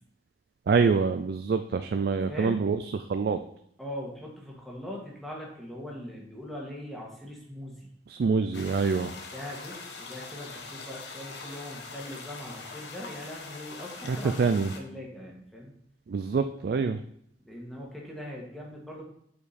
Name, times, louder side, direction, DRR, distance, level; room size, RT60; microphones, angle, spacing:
voice 1, 0.7-3.4 8.1-9.1 14.1-14.7 16.1-17.0, right 5 dB, 60° right, 9 dB, 0.3 m, -26 dB
voice 2, 2.3-2.6 3.8-7.9 9.3-14.5 14.7-15.7 17.4-19.0, left 1 dB, ahead, -3 dB, 1.6 m, -41 dB
sound 1, 8.5-14.8, left 4 dB, 80° left, 1.0 m, -43 dB
7.1 x 5.1 x 4.2 m, 0.71 s
head